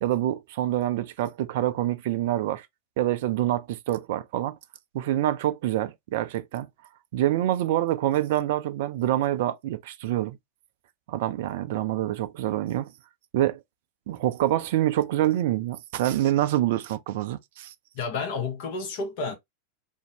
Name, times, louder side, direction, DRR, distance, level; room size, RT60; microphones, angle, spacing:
voice 1, 0.0-2.7 3.0-4.6 4.9-6.7 7.1-10.4 11.1-12.9 13.3-13.6 14.1-17.7, right 13 dB, 55° right, 0.4 m, -26 dB
voice 2, 17.9-19.3, left 4 dB, 55° left, 0.8 m, -30 dB
2.5 x 2.1 x 2.8 m
figure-of-eight pair, 90°, 0 cm